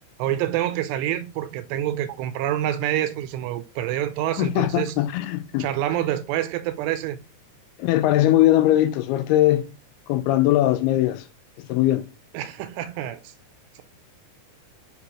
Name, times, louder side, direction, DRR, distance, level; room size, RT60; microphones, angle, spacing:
voice 1, 0.2-5.0 5.6-7.2 12.3-13.3, right 12 dB, 85° right, 2.7 m, -27 dB
voice 2, 4.4-5.7 7.8-9.7 10.1-11.2 11.7-12.0, left 14 dB, 80° left, 2.4 m, -20 dB
8.1 x 2.9 x 4.7 m
omnidirectional pair, 4.8 m